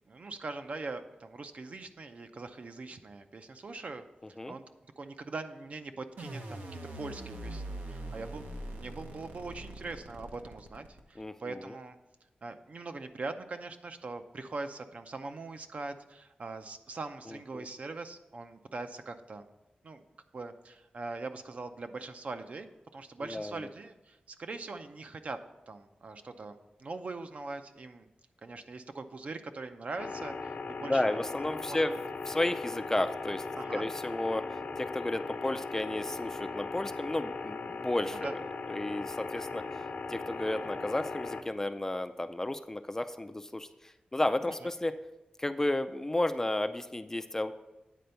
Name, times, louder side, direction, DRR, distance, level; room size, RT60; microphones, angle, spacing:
voice 1, 0.1-4.0 4.5-4.6 5.0-6.6 7.0-12.0 12.4-19.5 19.8-20.0 20.3-25.4 25.7-28.1 28.4-31.2 31.7-31.8 33.5-33.9 38.1-38.3, right 3 dB, 50° right, 8 dB, 0.6 m, -42 dB
Long low beep, 6.2-11.2, right 1 dB, 90° right, 1.0 m, -42 dB
voice 2, 11.2-11.8 17.3-17.7 23.2-23.7 30.9-31.9 32.3-33.4 33.7-38.4 38.7-45.0 45.4-47.5, left 1 dB, 15° left, 9 dB, 0.4 m, -33 dB
sound 1, 30.0-41.4, left 4 dB, 75° left, 0.9 m, -38 dB
9.2 x 4.3 x 6.8 m, 1.0 s
wide cardioid pair, 140°, 3 cm